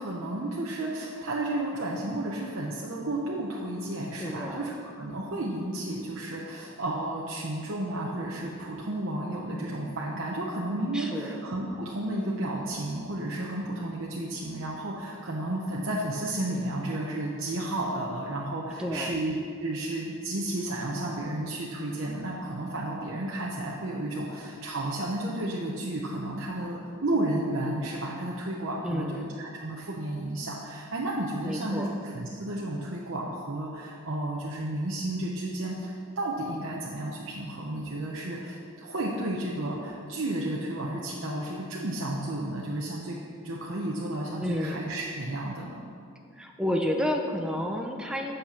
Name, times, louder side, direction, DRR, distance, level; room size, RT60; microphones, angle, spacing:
voice 1, 0.0-43.2 43.4-45.8, right 1 dB, 60° right, -4 dB, 0.9 m, -32 dB
voice 2, 4.2-4.7 10.9-11.4 18.8-19.2 28.8-29.3 31.5-31.9 44.4-44.8 46.4-48.4, left 1 dB, 5° right, 1 dB, 0.5 m, -30 dB
8.4 x 6.6 x 5.9 m, 2.3 s
head